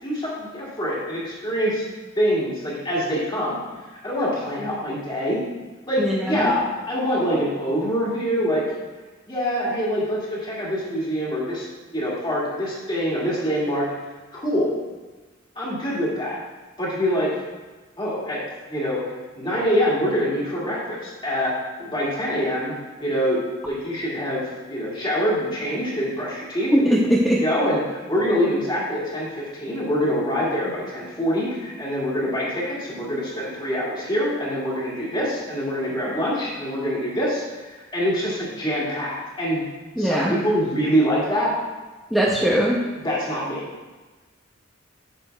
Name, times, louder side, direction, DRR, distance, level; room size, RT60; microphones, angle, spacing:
voice 1, 0.0-1.9 2.2-3.6 4.0-5.4 5.9-8.6 9.3-11.7 11.9-13.9 14.3-14.7 15.6-16.4 16.8-17.3 18.0-18.4 18.7-22.7 23.0-23.4 23.6-26.9 27.4-39.6 40.0-41.5 43.0-43.7, equal, 25° left, -6 dB, 1.9 m, -25 dB
voice 2, 6.0-6.5 26.7-27.4 40.0-40.4 42.1-42.8, equal, ahead, -6 dB, 0.6 m, -20 dB
8.6 x 6.7 x 2.3 m, 1.3 s
head